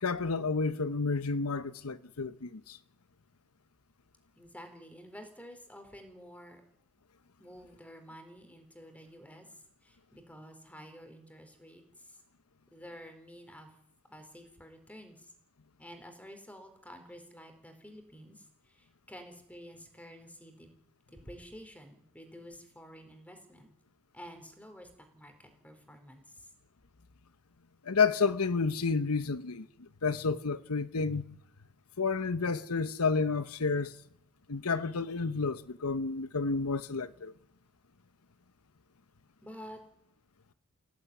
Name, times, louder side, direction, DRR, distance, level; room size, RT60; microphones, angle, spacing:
voice 1, 0.0-2.8 27.8-31.4 32.0-34.0 34.5-37.3, left 4 dB, 85° left, 1.0 m, -30 dB
voice 2, 4.4-6.6 7.4-12.2 12.7-13.7 14.1-15.3 15.8-20.7 21.1-23.7 24.1-26.5 39.4-39.8, equal, 5° left, 4.4 m, -50 dB
27.0 x 17.0 x 9.7 m
head